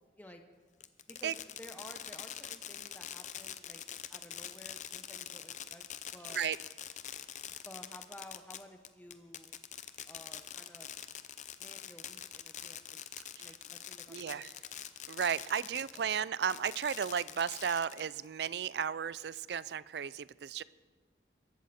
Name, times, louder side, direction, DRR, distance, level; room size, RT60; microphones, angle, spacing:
Fireworks, 0.8-16.0 16.4-18.3, left 10 dB, 40° left, 0.6 m, -45 dB
voice 1, 1.1-3.8 4.1-5.8 6.1-6.4 7.6-9.6 10.1-10.9 11.6-13.0 13.4-14.6, left 1 dB, 10° left, 5 dB, 0.9 m, -53 dB
voice 2, 14.1-14.5 15.1-20.6, right 7 dB, 70° right, 19 dB, 0.4 m, -34 dB
22.0 x 12.0 x 4.3 m, 1.4 s
head